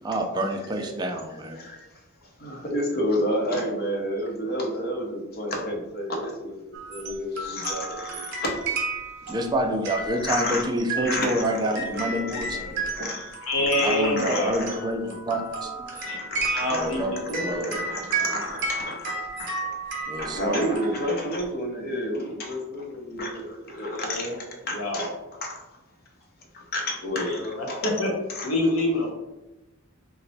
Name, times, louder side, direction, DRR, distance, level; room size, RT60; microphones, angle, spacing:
voice 1, 0.0-1.6 9.3-12.8 13.8-16.0 16.7-17.1 17.4-17.8 20.1-20.7, right 1 dB, 20° right, 3 dB, 0.4 m, -28 dB
voice 2, 0.6-0.9 1.5-1.8 2.4-8.8 9.3-9.4 10.2-10.7 11.0-13.3 13.7-14.9 15.9-17.1 17.4-19.7 20.2-24.3 24.7-25.1 25.4-25.6 26.5-27.4 27.7-27.9 28.3-28.5, equal, 50° left, 1 dB, 0.7 m, -31 dB
sound 1, 6.7-21.5, right 3 dB, 55° right, 0.9 m, -33 dB
voice 3, 13.4-14.6 16.0-17.9 23.9-24.4 24.7-25.1 27.3-28.1 28.4-29.1, left 1 dB, 80° left, 0 dB, 0.9 m, -27 dB
3.0 x 2.1 x 4.1 m, 1.0 s
head